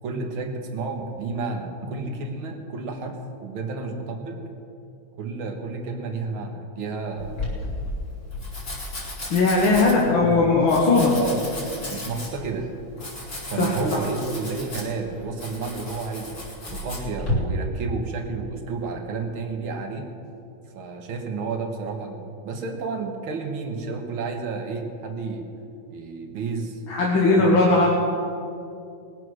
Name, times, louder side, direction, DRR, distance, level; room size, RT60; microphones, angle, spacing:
voice 1, 0.0-4.5 5.2-7.4 9.6-10.3 11.1-11.5 11.9-12.7 13.5-16.4 16.7-20.1 20.7-25.5 25.9-26.8 27.1-27.6, right 4 dB, 90° right, 4 dB, 2.2 m, -31 dB
Domestic sounds home sounds, 7.2-17.3, left 2 dB, 45° left, 3.6 m, -34 dB
voice 2, 9.3-11.1 13.6-13.7 26.9-27.9, left 3 dB, 75° left, -2 dB, 2.2 m, -18 dB
20.0 x 7.7 x 6.3 m, 2.5 s
omnidirectional pair, 2.2 m